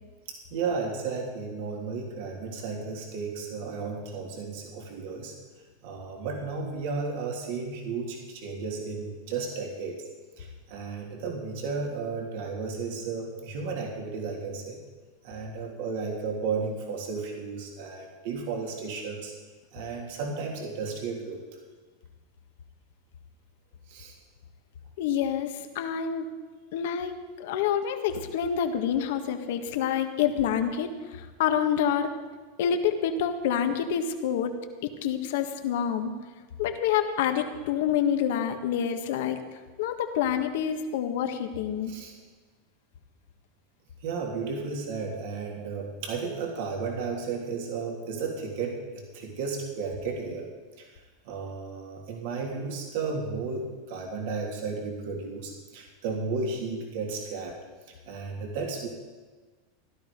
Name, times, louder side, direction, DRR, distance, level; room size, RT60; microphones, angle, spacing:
voice 1, 0.3-5.3 5.8-10.0 10.4-14.8 15.2-19.3 19.7-21.4 23.9-24.1 41.9-42.1 44.0-50.5 50.8-57.6 58.1-58.9, right 4 dB, 65° right, 0 dB, 3.1 m, -33 dB
voice 2, 25.0-26.3 26.7-32.1 32.6-34.5 34.8-36.1 36.6-39.4 39.8-41.9, left 8 dB, 70° left, 6 dB, 1.6 m, -27 dB
16.0 x 12.0 x 5.3 m, 1.4 s
supercardioid pair, 130°, 0 cm